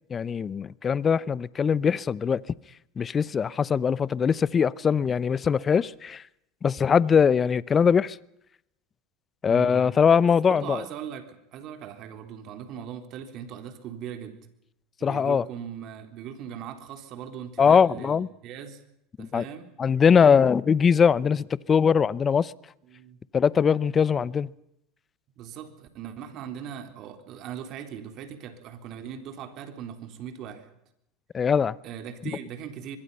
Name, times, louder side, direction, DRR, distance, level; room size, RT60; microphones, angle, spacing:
voice 1, 0.1-2.4 3.0-6.2 6.6-8.2 9.4-10.8 15.0-15.4 17.6-18.3 19.2-19.4 19.8-22.5 23.3-24.5 31.3-31.8, left 6 dB, 30° left, 0.8 m, -21 dB
voice 2, 9.5-9.9 10.5-14.4 15.0-18.8 19.2-19.7 22.9-23.2 25.4-30.7 31.8-33.0, right 8 dB, 55° right, 3.8 m, -39 dB
25.0 x 22.0 x 5.6 m
hypercardioid pair, 95°, 0 cm